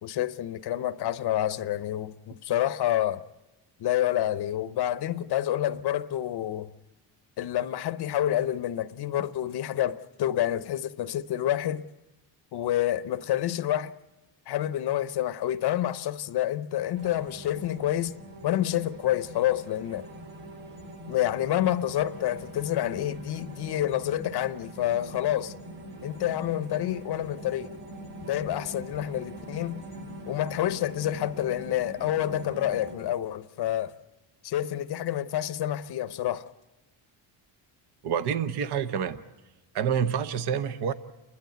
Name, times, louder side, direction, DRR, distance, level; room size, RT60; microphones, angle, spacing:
voice 1, 0.0-3.2 3.8-6.7 7.4-11.8 12.5-13.9 14.5-18.1 18.4-20.1 21.1-25.5 26.0-27.7 28.2-29.8 30.3-34.0 34.4-36.5, left 12 dB, 60° left, 0.8 m, -28 dB
sound 1, 16.9-33.0, right 1 dB, 45° right, 4.2 m, -43 dB
voice 2, 38.0-39.2 39.7-40.9, right 8 dB, 60° right, 0.9 m, -27 dB
29.5 x 11.5 x 9.2 m
cardioid pair, 130°, 46 cm